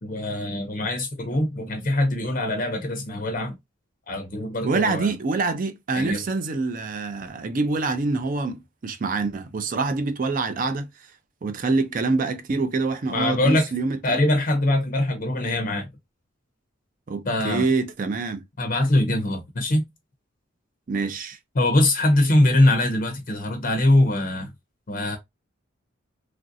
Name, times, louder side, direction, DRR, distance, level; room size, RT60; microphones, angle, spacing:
voice 1, 0.0-3.6 4.1-5.1 5.9-6.2 13.1-13.7 14.0-15.9 17.2-17.7 18.6-19.8 21.5-24.5 24.9-25.2, left 1 dB, 40° left, 0.5 m, -22 dB
voice 2, 4.6-10.9 11.4-14.2 17.1-18.4 20.9-21.4, right 3 dB, 40° right, 0.4 m, -26 dB
3.1 x 2.5 x 2.6 m
head